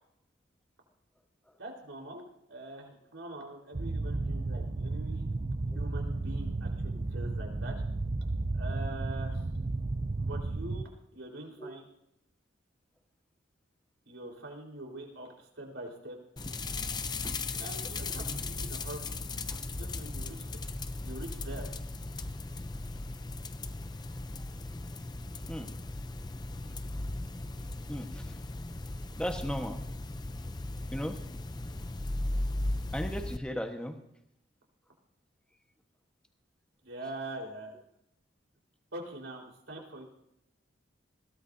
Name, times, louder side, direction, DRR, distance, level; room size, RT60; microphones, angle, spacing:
voice 1, 1.6-5.3 5.7-7.7 8.5-9.4 10.2-11.8 14.1-16.2 17.6-19.1 19.8-20.5 21.0-21.7 36.8-37.8 38.9-40.0, right 1 dB, 80° right, 0 dB, 4.3 m, -44 dB
sound 1, 3.7-10.8, right 2 dB, 35° right, 0.5 m, -33 dB
sound 2, 16.4-33.4, left 2 dB, 20° left, 0.6 m, -37 dB
voice 2, 27.9-28.4 29.2-29.8 30.9-31.2 32.9-34.0, equal, 5° left, 4 dB, 1.3 m, -36 dB
20.5 x 16.5 x 2.7 m, 0.78 s
head